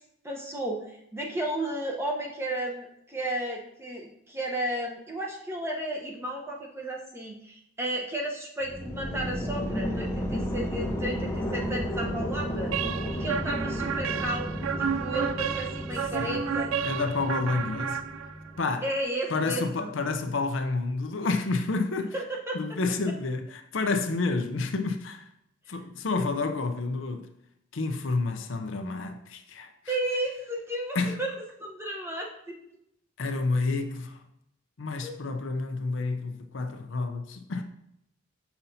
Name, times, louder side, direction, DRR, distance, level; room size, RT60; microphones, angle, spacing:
voice 1, 0.2-12.7 13.1-16.7 18.8-19.9 22.1-22.6 26.2-26.3 29.9-31.3 31.6-32.6 35.0-35.2, right 1 dB, 10° right, 0.8 m, -33 dB
sound 1, 8.6-18.6, equal, 10° left, 0.5 m, -33 dB
sound 2, 12.7-18.6, right 7 dB, 75° right, 0.3 m, -32 dB
voice 2, 16.8-18.0 18.6-18.9 19.3-22.1 22.5-25.3 25.7-27.3 27.7-30.0 30.9-31.2 33.2-34.2 34.8-37.6, left 3 dB, 65° left, 0.6 m, -29 dB
6.8 x 5.7 x 2.7 m
head